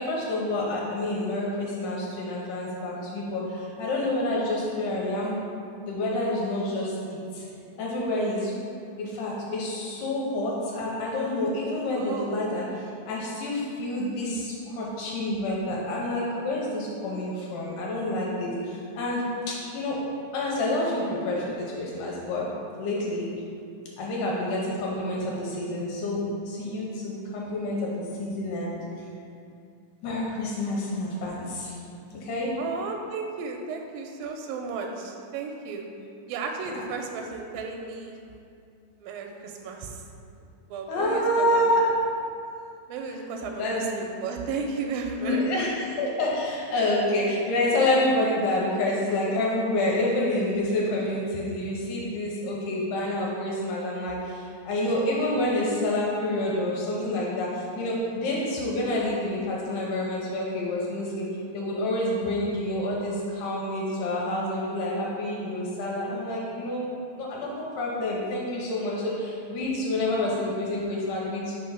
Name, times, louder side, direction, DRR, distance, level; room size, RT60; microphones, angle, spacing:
voice 1, 0.0-5.4 5.8-7.5 7.8-8.5 9.0-20.0 20.3-22.5 22.8-23.3 24.0-29.1 30.0-31.7 32.1-32.5 40.9-41.8 43.1-43.2 43.6-43.9 45.1-61.3 61.5-71.6, left 1 dB, 75° left, -4 dB, 2.2 m, -28 dB
voice 2, 12.0-12.3 32.6-35.8 36.3-38.2 39.0-40.0 40.7-41.6 42.9-45.7, right 4 dB, 85° right, 2 dB, 2.2 m, -34 dB
5.2 x 3.4 x 5.6 m, 2.5 s
omnidirectional pair, 4.0 m